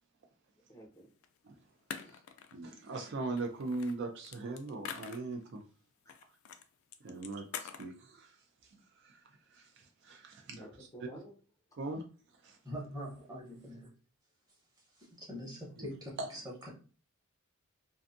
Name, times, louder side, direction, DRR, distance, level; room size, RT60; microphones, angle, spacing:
voice 1, 0.7-1.1 1.9-2.1 10.6-11.3, right 1 dB, 15° left, -1 dB, 0.4 m, -51 dB
sound 1, 1.2-1.3 1.9-2.7 3.4-5.6 6.1-6.6 6.9-7.9, left 8 dB, 75° left, 0.3 m, -45 dB
voice 2, 2.5-5.6 7.0-8.4 8.7-9.2 9.5-10.7 11.8-12.0 12.4-12.6 15.8-15.9 16.2-16.3, right 3 dB, 55° right, 3 dB, 0.4 m, -40 dB
voice 3, 12.6-13.9 14.8-16.8, equal, 20° right, -3 dB, 0.9 m, -44 dB
2.5 x 2.3 x 2.5 m, 0.37 s
head